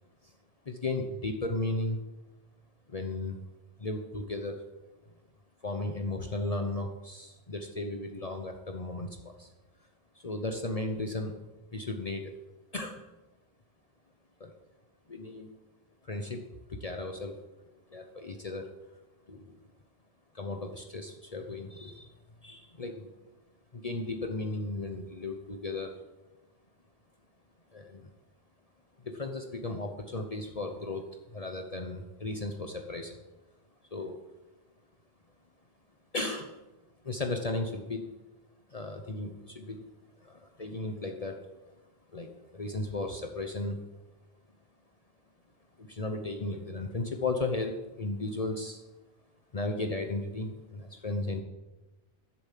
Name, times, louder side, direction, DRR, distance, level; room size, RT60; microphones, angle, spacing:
voice 1, 0.6-2.0 2.9-3.4 3.8-4.6 5.6-9.5 10.1-11.4 11.7-12.3 12.7-13.0 14.4-14.5 15.1-15.6 16.0-16.4 16.7-17.4 17.9-18.7 19.3-19.6 20.3-22.1 22.4-23.1 23.7-26.0 27.7-28.1 29.0-31.1 31.3-33.2 33.9-34.2 36.1-36.6 37.0-38.1 38.7-39.9 40.2-41.4 42.1-43.8 45.8-48.8 49.5-51.4, left 2 dB, 40° left, 4 dB, 1.0 m, -35 dB
12.0 x 7.0 x 7.5 m, 1.1 s
omnidirectional pair, 1.0 m